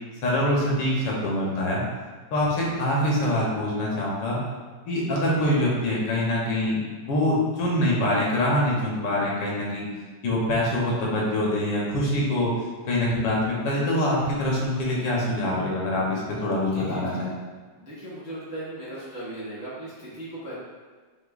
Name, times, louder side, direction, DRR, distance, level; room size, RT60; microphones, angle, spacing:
voice 1, 0.2-1.8 2.3-4.4 4.8-9.9 10.2-12.5 12.9-17.3, left 1 dB, 90° left, -4 dB, 1.7 m, -24 dB
voice 2, 16.6-17.2 17.8-20.6, right 1 dB, 15° right, -8 dB, 0.5 m, -37 dB
5.8 x 3.1 x 2.4 m, 1.4 s
omnidirectional pair, 1.9 m